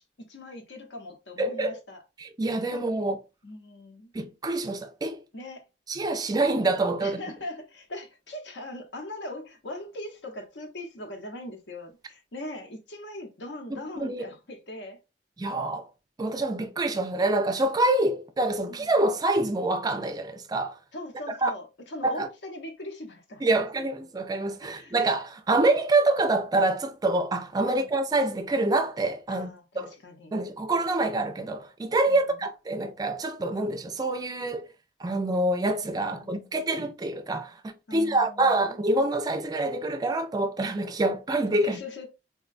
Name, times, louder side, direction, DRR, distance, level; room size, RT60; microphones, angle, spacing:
voice 1, 0.0-2.0 2.7-2.9 3.4-4.1 5.3-5.7 7.0-15.0 18.7-18.9 20.9-23.9 24.6-24.9 27.7-27.9 29.3-30.4 32.1-32.5 36.0-36.7 37.9-38.8 41.6-42.1, left 1 dB, 75° left, 0.8 m, -41 dB
voice 2, 1.4-1.8 2.2-3.2 4.1-5.2 5.9-7.2 13.7-14.3 15.4-15.9 16.2-20.8 21.4-21.5 22.0-22.3 23.4-29.5 29.8-29.9 30.3-34.7 35.0-41.8, right 2 dB, 20° right, 0.4 m, -26 dB
3.6 x 2.2 x 2.5 m
head